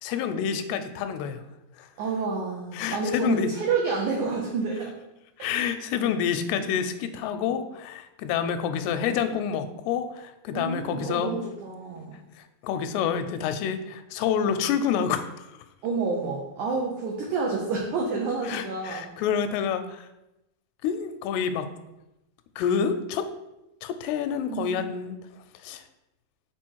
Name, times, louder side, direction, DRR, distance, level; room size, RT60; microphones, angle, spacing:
voice 1, 0.0-1.4 1.8-1.9 2.7-3.5 5.4-11.3 12.4-15.5 18.5-20.1 20.8-21.7 22.6-23.2 23.8-25.2 25.6-25.8, left 7 dB, 85° left, 9 dB, 2.6 m, -28 dB
voice 2, 2.0-4.9 5.4-5.5 10.5-12.1 15.8-19.1 24.5-24.9, right 4 dB, 90° right, 0 dB, 1.7 m, -29 dB
6.2 x 4.5 x 4.5 m, 0.93 s
omnidirectional pair, 4.6 m